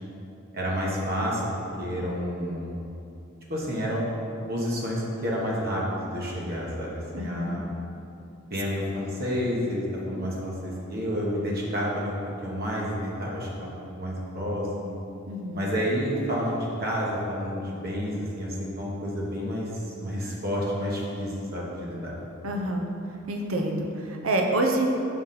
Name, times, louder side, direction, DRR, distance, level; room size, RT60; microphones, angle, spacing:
voice 1, 0.5-2.7 3.5-4.0 4.5-7.6 8.5-14.9 15.5-22.1, equal, 50° right, -4 dB, 1.1 m, -30 dB
voice 2, 7.1-7.6 15.3-15.7 22.4-22.8 23.3-24.9, right 1 dB, 80° right, 2 dB, 0.8 m, -27 dB
5.8 x 3.9 x 5.7 m, 2.7 s
head